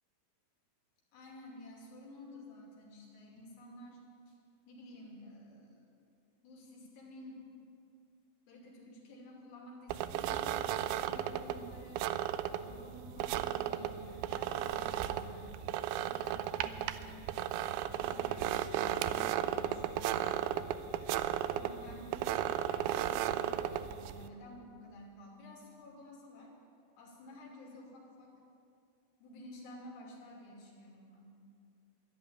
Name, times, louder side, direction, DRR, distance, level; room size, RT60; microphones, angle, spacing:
voice 1, 1.1-4.3 4.7-5.8 6.4-7.5 8.5-12.1 12.5-20.3 20.9-26.5 27.0-28.3 29.2-31.3, left 1 dB, 85° left, -2 dB, 4.9 m, -52 dB
sound 1, 9.9-24.3, right 11 dB, 80° right, 2.3 m, -35 dB
13.0 x 11.5 x 8.8 m, 2.4 s
omnidirectional pair, 4.7 m